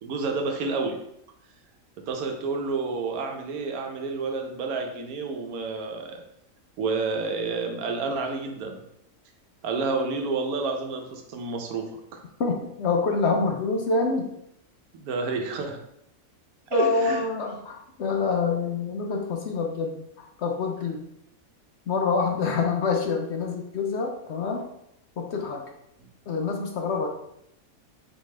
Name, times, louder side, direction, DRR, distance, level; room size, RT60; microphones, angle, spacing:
voice 1, 0.0-1.0 2.1-6.2 6.8-8.8 9.6-12.2 14.9-15.8 16.7-17.2 26.0-26.1, right 3 dB, 90° right, 4 dB, 1.2 m, -29 dB
voice 2, 12.4-14.3 16.7-21.0 21.9-24.7 25.2-25.6 26.3-27.1, left 4 dB, 60° left, 2 dB, 0.8 m, -26 dB
4.2 x 3.5 x 3.2 m, 0.77 s
omnidirectional pair, 1.5 m